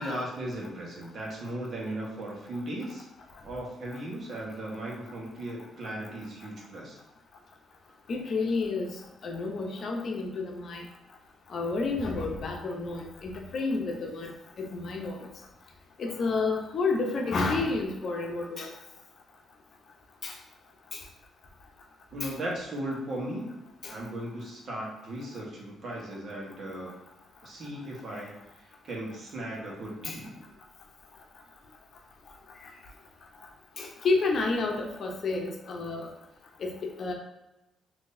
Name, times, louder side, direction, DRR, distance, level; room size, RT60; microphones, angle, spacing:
voice 1, 0.0-3.1 3.4-7.0 22.1-23.6 23.9-26.9 27.4-28.3 28.8-30.4, right 1 dB, 55° right, -3 dB, 1.1 m, -37 dB
voice 2, 8.1-8.9 9.2-10.8 11.5-14.3 14.6-15.3 16.0-18.7 20.2-20.3 20.9-21.0 22.2-22.3 23.8-23.9 30.0-30.2 33.8-36.1 36.6-36.7 37.0-37.1, left 3 dB, 55° left, 1 dB, 0.7 m, -30 dB
3.7 x 2.7 x 2.7 m, 0.94 s
cardioid pair, 90°, 0 cm